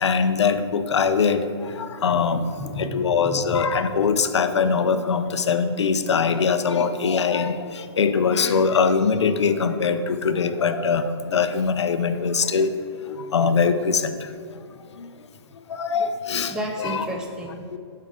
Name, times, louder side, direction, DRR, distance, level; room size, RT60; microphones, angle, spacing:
voice 1, 0.0-1.4 2.0-2.4 2.8-7.5 8.0-11.0 11.3-12.7 13.3-14.0 15.8-16.5 16.8-17.1 17.7-17.8, left 5 dB, 85° left, 10 dB, 0.6 m, -21 dB
voice 2, 2.1-3.6 16.5-17.6, equal, 5° right, 1 dB, 0.4 m, -32 dB
8.4 x 5.5 x 3.6 m, 2.3 s
hypercardioid pair, 160°, 14 cm